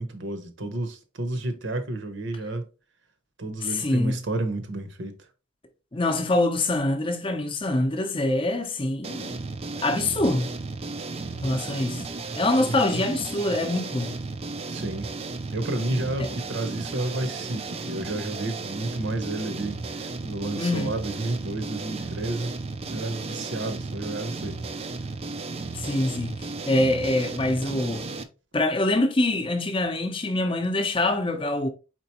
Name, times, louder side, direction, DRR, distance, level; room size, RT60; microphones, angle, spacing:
voice 1, 0.0-2.7 3.4-5.1 12.6-13.0 14.7-15.1 15.5-22.5 22.9-24.5, right 2 dB, 55° right, 0.8 m, -31 dB
voice 2, 3.6-4.2 5.9-9.4 9.8-10.6 11.4-12.0 12.4-14.1 16.2-16.3 20.6-20.9 25.7-28.0 28.5-31.7, left 2 dB, 25° left, 0.6 m, -25 dB
sound 1, 9.0-28.2, right 3 dB, 30° right, 0.4 m, -34 dB
4.5 x 3.8 x 2.9 m
head